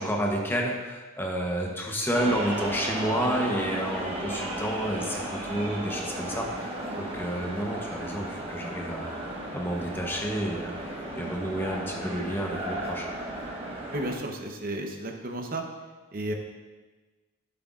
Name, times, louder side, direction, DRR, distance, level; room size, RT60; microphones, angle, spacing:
voice 1, 0.0-9.1 9.5-10.7 11.1-13.1, equal, 10° left, 0 dB, 0.8 m, -30 dB
sound 1, 2.1-14.1, right 1 dB, 30° right, 1.4 m, -35 dB
voice 2, 13.9-15.6 16.1-16.3, right 1 dB, 45° right, 3 dB, 0.8 m, -33 dB
12.0 x 7.7 x 2.4 m, 1.3 s
head